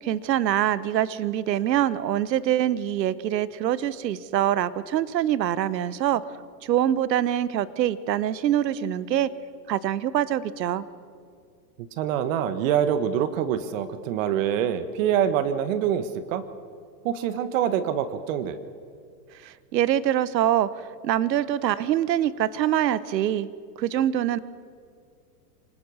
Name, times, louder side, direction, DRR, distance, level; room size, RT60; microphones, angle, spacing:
voice 1, 0.0-6.2 6.6-9.3 9.7-10.8 19.4-23.5 23.8-24.4, right 11 dB, 80° right, 17 dB, 1.0 m, -24 dB
voice 2, 12.0-16.4 17.0-18.6, right 9 dB, 50° right, 12 dB, 1.4 m, -25 dB
25.5 x 19.5 x 6.4 m, 2.2 s
hypercardioid pair, 130°, 49 cm